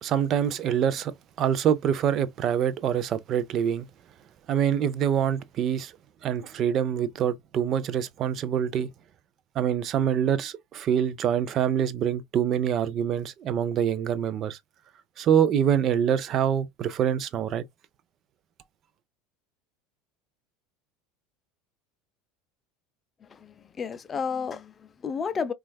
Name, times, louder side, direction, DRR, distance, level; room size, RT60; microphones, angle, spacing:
voice 1, 0.0-3.9 4.5-5.9 6.2-8.9 9.6-14.6 15.2-17.6, right 9 dB, 45° right, 0.4 m, -25 dB
voice 2, 23.2-25.5, left 6 dB, 30° left, 0.4 m, -32 dB
4.4 x 2.3 x 2.2 m
supercardioid pair, 105°, 0 cm